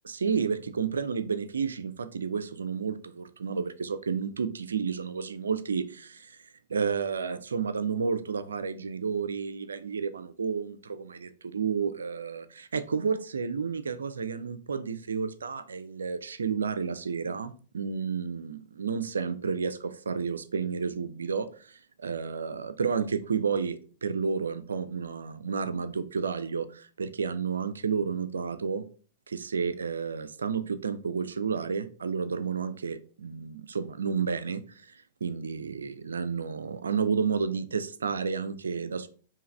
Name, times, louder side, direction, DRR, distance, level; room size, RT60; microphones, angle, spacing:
voice 1, 0.0-28.9 29.3-39.1, right 6 dB, 80° right, 0.4 m, -31 dB
4.6 x 2.9 x 3.2 m
hypercardioid pair, 105°, 0 cm